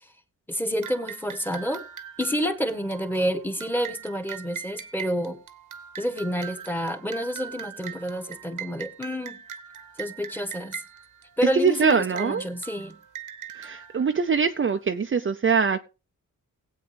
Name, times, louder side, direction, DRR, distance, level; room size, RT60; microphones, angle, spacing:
voice 1, 0.5-1.8 2.2-5.4 6.0-9.4 10.0-10.8 11.4-13.0, equal, 5° left, 1.5 m, -29 dB
sound 1, 0.8-15.0, right 8 dB, 70° right, 1.2 m, -41 dB
voice 2, 11.5-12.5 13.6-15.8, right 5 dB, 40° right, 0.7 m, -23 dB
19.0 x 8.4 x 3.5 m
wide cardioid pair, 95°, 32 cm